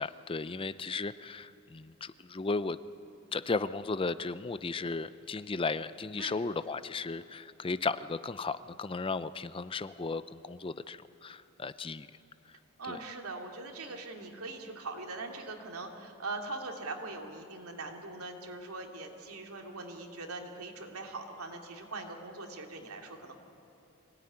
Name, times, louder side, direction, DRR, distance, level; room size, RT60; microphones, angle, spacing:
voice 1, 0.0-2.8 3.3-12.1 12.9-13.0, left 3 dB, 25° left, 14 dB, 0.5 m, -35 dB
voice 2, 12.8-23.4, right 3 dB, 85° right, 2 dB, 2.8 m, -41 dB
25.0 x 17.5 x 9.8 m, 3.0 s
head